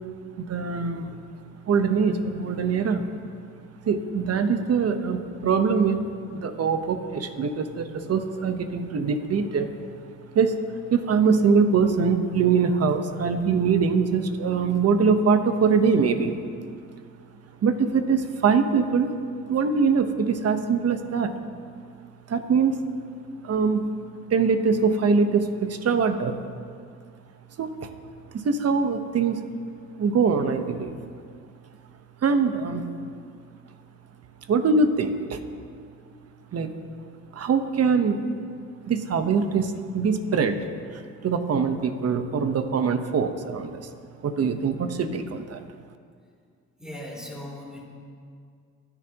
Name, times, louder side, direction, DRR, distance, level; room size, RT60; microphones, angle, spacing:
voice 1, 0.4-1.2 1.7-3.0 3.8-9.7 10.3-10.6 10.9-16.4 17.6-19.1 19.5-21.3 22.3-22.8 23.4-23.9 24.3-26.4 27.6-27.9 28.3-29.4 30.0-31.0 32.2-32.8 34.5-35.4 36.5-36.7 37.3-38.2 38.9-40.6 40.9-43.8 44.2-45.6, right 5 dB, 55° right, 8 dB, 1.2 m, -23 dB
voice 2, 46.8-47.8, left 1 dB, ahead, -3 dB, 3.6 m, -38 dB
24.0 x 10.0 x 3.0 m, 2.2 s
cardioid pair, 90°, 30 cm